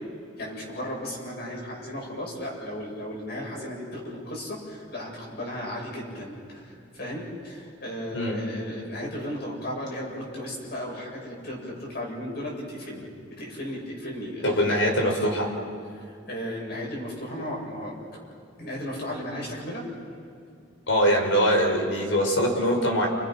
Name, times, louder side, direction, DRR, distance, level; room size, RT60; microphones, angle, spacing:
voice 1, 0.4-14.6 15.9-18.2 18.6-19.9, left 1 dB, 55° left, -3 dB, 7.8 m, -35 dB
voice 2, 14.4-15.5 20.9-23.1, equal, 75° left, 0 dB, 6.0 m, -22 dB
30.0 x 29.5 x 6.0 m, 2.4 s
head